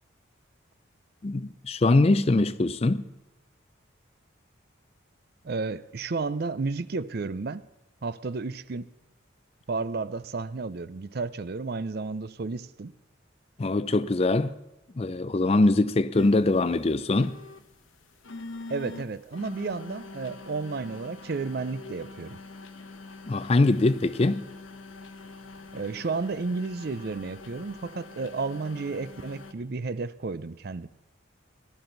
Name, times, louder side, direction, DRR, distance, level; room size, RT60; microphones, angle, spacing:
voice 1, 1.2-3.1 13.6-14.6 15.0-17.4 23.3-24.4, left 2 dB, 30° left, 0.4 m, -23 dB
voice 2, 5.4-7.6 8.0-8.9 9.7-12.9 18.7-22.4 25.7-30.9, right 4 dB, 50° right, 0.5 m, -32 dB
sound 1, 16.1-29.5, left 3 dB, 85° left, 1.1 m, -44 dB
18.5 x 12.5 x 3.9 m
head